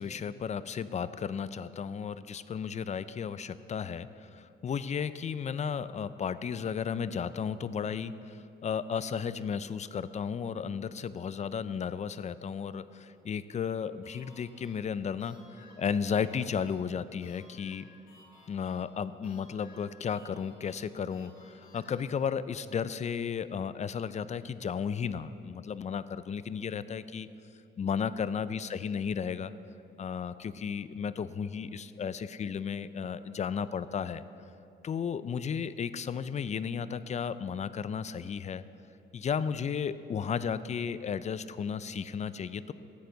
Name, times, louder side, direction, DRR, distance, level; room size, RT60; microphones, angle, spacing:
voice 1, 0.0-17.9 18.5-27.3 27.8-29.5 30.0-34.2 34.8-38.6 39.1-42.7, left 7 dB, 35° left, 15 dB, 0.4 m, -34 dB
sound 1, 14.0-22.0, left 2 dB, 85° left, 2.1 m, -59 dB
14.0 x 9.1 x 3.9 m, 2.7 s
cardioid pair, 90°, 20 cm